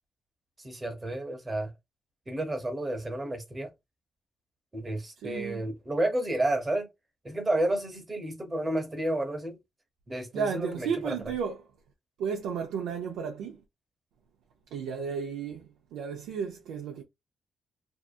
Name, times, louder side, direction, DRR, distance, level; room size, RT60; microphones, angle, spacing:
voice 1, 0.6-1.7 2.3-3.7 4.7-6.9 7.2-9.6 10.1-11.2, right 1 dB, 25° right, 1.0 m, -31 dB
voice 2, 5.2-5.6 10.3-11.7 12.2-13.6 14.7-17.0, right 6 dB, 90° right, 0.4 m, -33 dB
2.7 x 2.3 x 2.4 m
cardioid pair, 70°, 0 cm